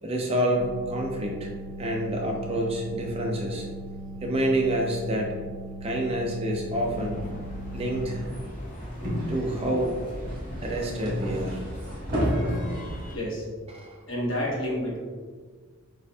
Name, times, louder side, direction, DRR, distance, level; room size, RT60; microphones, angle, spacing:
voice 1, 0.0-1.5 1.8-3.7 4.2-5.4 5.8-7.3 7.7-8.2 9.3-9.9 10.6-11.6 13.7-14.0, right 1 dB, 25° right, 0 dB, 0.5 m, -28 dB
sound 1, 0.5-8.2, right 1 dB, 85° right, 0.5 m, -39 dB
sound 2, 6.7-13.2, equal, 35° left, 0.7 m, -39 dB
sound 3, 8.1-13.1, equal, 45° right, 1.5 m, -32 dB
voice 2, 13.1-13.5 14.1-15.0, equal, 60° left, -4 dB, 1.1 m, -29 dB
6.7 x 2.5 x 2.3 m, 1.5 s
head